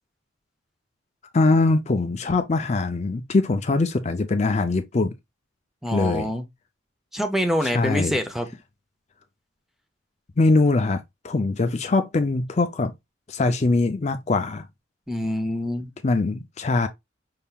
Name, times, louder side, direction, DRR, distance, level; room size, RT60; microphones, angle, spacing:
voice 1, 1.3-5.1 5.9-6.3 7.6-8.2 10.4-12.9 13.3-14.7 16.0-16.9, left 3 dB, 35° left, 0.4 m, -22 dB
voice 2, 5.8-6.4 7.1-8.5 15.1-15.9, equal, ahead, 0.7 m, -25 dB
5.5 x 3.6 x 2.3 m
head